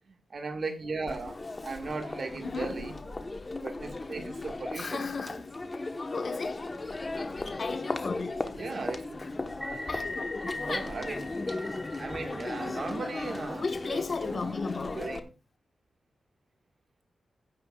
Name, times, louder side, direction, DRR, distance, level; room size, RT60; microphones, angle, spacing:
voice 1, 0.3-2.9 3.6-5.0 8.5-9.2 10.5-11.3 12.0-14.0 14.3-15.3, right 3 dB, 50° right, 1.7 m, -37 dB
Crowd, 1.1-15.2, left 2 dB, 30° left, 1.1 m, -37 dB
voice 2, 2.4-3.0 4.7-8.6 9.2-9.3 9.9-10.9 13.6-15.1, left 4 dB, 45° left, 1.3 m, -36 dB
sound 1, 9.5-13.8, left 2 dB, 10° right, 4.7 m, -41 dB
16.0 x 9.4 x 2.4 m
wide cardioid pair, 100°, 0 cm